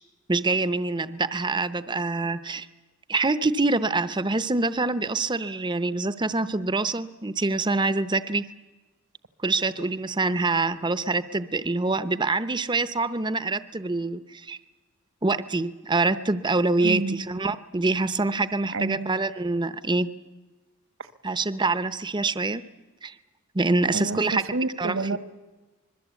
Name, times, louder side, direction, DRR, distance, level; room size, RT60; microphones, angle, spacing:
voice 1, 0.3-2.7 3.1-8.4 9.4-14.6 15.2-20.1 21.2-22.6 23.0-23.1 23.5-24.4 24.8-25.2, right 3 dB, 20° right, 13 dB, 0.7 m, -25 dB
voice 2, 16.8-17.2 18.7-19.1 21.0-21.1 23.9-25.2, right 3 dB, 65° right, 12 dB, 1.4 m, -29 dB
25.5 x 21.5 x 8.3 m, 1.2 s
head